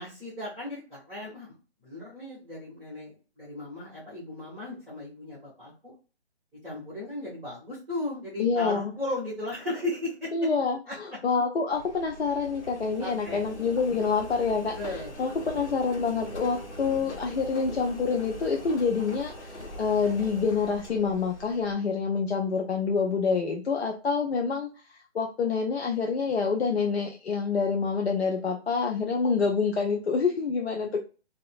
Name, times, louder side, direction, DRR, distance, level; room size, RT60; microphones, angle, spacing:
voice 1, 0.0-1.5 1.8-5.9 6.6-10.3 10.9-11.0 13.0-13.5 14.7-15.6, left 2 dB, 5° right, -15 dB, 0.7 m, -36 dB
voice 2, 8.4-8.9 10.3-14.8 15.2-24.7 25.1-31.0, left 5 dB, 65° left, 1 dB, 0.5 m, -27 dB
Engine, 11.7-21.7, equal, 90° left, 1.0 m, -42 dB
2.6 x 2.3 x 2.4 m, 0.34 s
figure-of-eight pair, 150°, 34 cm